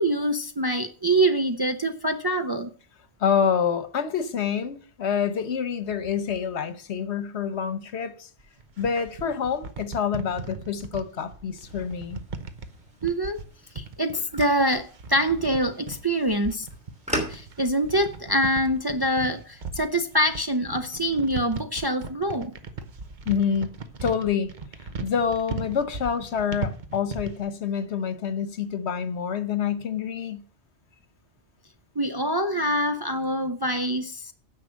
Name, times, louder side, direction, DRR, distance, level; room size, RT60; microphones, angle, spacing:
voice 1, 0.0-2.7 13.0-13.4 13.7-16.7 17.3-22.5 32.0-34.3, right 1 dB, 30° right, 0.5 m, -25 dB
voice 2, 3.2-8.3 8.8-12.2 23.3-23.7 24.0-24.5 25.0-30.4, left 7 dB, 75° left, 1.2 m, -27 dB
sound 1, 8.4-27.5, right 4 dB, 45° right, 1.0 m, -38 dB
sound 2, 11.7-19.2, equal, 5° right, 2.9 m, -39 dB
9.7 x 6.3 x 6.3 m
omnidirectional pair, 1.1 m